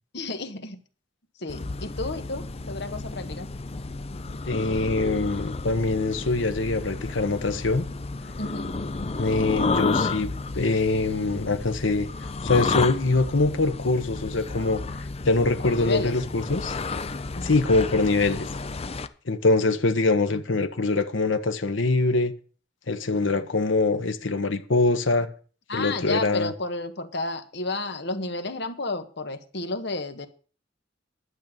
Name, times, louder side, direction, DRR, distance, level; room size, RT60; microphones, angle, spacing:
voice 1, 0.1-0.8 1.4-3.5 8.4-8.7 15.6-16.2 17.3-17.5 25.7-30.3, left 2 dB, 65° left, 1.5 m, -32 dB
sound 1, 1.5-19.1, left 3 dB, 35° left, 0.6 m, -32 dB
voice 2, 4.5-7.8 9.2-10.3 10.5-12.1 12.4-14.8 15.3-16.7 17.4-18.5 19.3-22.3 22.9-25.3 25.7-26.5, left 3 dB, 90° left, 1.2 m, -23 dB
11.5 x 7.0 x 7.9 m
head